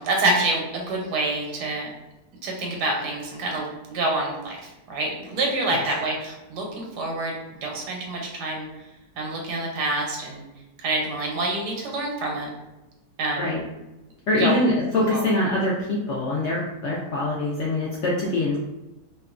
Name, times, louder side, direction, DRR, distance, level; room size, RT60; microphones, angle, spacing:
voice 1, 0.0-1.9 2.4-8.7 9.2-10.4 10.8-12.5 13.2-13.5 14.4-14.5 15.1-15.3, right 2 dB, 90° right, 0 dB, 1.3 m, -27 dB
voice 2, 14.3-18.6, left 2 dB, 80° left, -5 dB, 0.6 m, -24 dB
2.8 x 2.3 x 2.3 m, 1.0 s
omnidirectional pair, 1.7 m